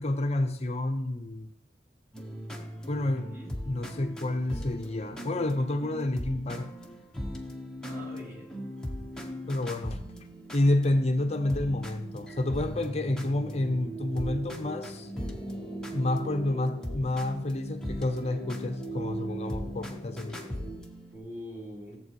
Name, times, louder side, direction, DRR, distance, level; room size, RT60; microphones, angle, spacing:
voice 1, 0.0-1.5 2.9-3.3 3.7-6.7 9.5-10.0 10.5-15.1 15.9-20.4, left 1 dB, 40° left, 0.8 m, -29 dB
sound 1, 2.1-21.2, equal, 5° left, 1.2 m, -40 dB
voice 2, 3.2-3.5 7.8-8.6 21.1-22.0, equal, 15° right, 4.1 m, -43 dB
sound 2, 6.3-20.7, right 1 dB, 40° right, 5.4 m, -42 dB
14.5 x 7.7 x 4.8 m
head